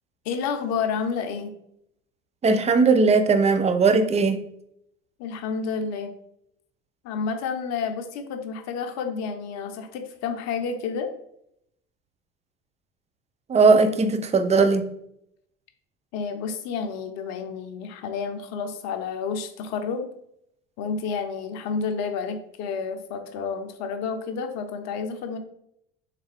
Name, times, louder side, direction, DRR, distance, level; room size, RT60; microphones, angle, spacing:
voice 1, 0.2-1.5 5.2-6.1 7.0-11.1 16.1-20.1 20.8-25.4, left 5 dB, 60° left, 0.7 m, -30 dB
voice 2, 2.4-4.4 13.5-14.9, right 4 dB, 20° right, 0.5 m, -19 dB
3.6 x 3.3 x 3.4 m
hypercardioid pair, 70°, 31 cm